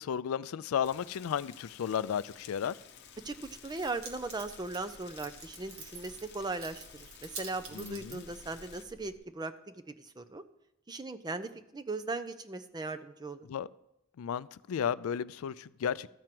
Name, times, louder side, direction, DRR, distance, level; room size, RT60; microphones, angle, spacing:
voice 1, 0.0-2.8 7.7-8.2 13.5-13.7 14.2-16.1, left 8 dB, 75° left, 0.3 m, -33 dB
Rain, 0.8-8.8, left 8 dB, 50° left, 0.8 m, -54 dB
Keys jangling, 3.2-9.2, right 3 dB, 75° right, 1.7 m, -49 dB
voice 2, 3.6-10.4 10.9-13.5, right 3 dB, 20° right, 0.5 m, -38 dB
13.5 x 4.5 x 7.6 m
head